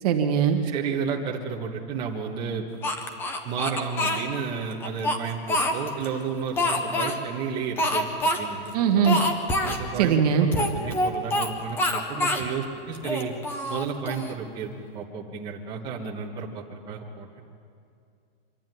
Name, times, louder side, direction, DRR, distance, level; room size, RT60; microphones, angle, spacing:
voice 1, 0.0-0.6 8.7-9.2 10.0-10.5, right 7 dB, 40° right, 4 dB, 1.5 m, -21 dB
voice 2, 0.6-2.7 3.4-9.0 9.6-13.3 13.7-17.4, right 6 dB, 15° right, -3 dB, 1.4 m, -32 dB
Speech, 2.8-4.2 4.8-6.1 6.6-7.2 7.8-8.4 8.6-8.7 9.0-9.8 10.5-11.5 11.8-12.5 12.9-14.3, left 1 dB, 5° left, 0.6 m, -26 dB
25.0 x 12.0 x 9.3 m, 2.4 s
supercardioid pair, 175°, 30 cm